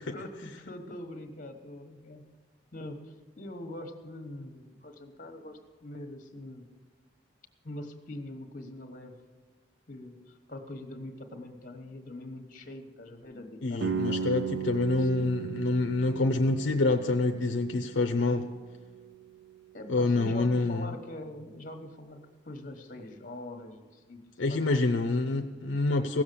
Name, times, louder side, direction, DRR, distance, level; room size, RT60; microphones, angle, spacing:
voice 1, 0.1-2.2 2.7-6.7 7.6-9.2 9.9-14.2 14.9-15.3 19.7-24.8, left 1 dB, 45° left, 6 dB, 1.1 m, -43 dB
voice 2, 13.6-18.5 19.9-20.9 24.4-26.2, left 2 dB, 70° left, 6 dB, 0.6 m, -27 dB
sound 1, 13.8-19.6, right 6 dB, 60° right, 0.4 m, -36 dB
16.5 x 7.2 x 6.8 m, 1.4 s
head